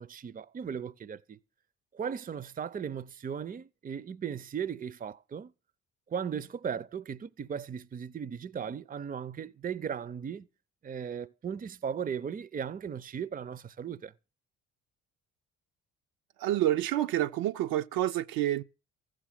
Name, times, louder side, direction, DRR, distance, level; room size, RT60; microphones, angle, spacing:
voice 1, 0.0-1.4 1.9-5.5 6.1-10.5 10.8-14.1, right 7 dB, 20° right, 0.6 m, -37 dB
voice 2, 16.4-18.6, right 13 dB, 60° right, 0.7 m, -28 dB
15.0 x 6.4 x 7.5 m
hypercardioid pair, 50°, 40 cm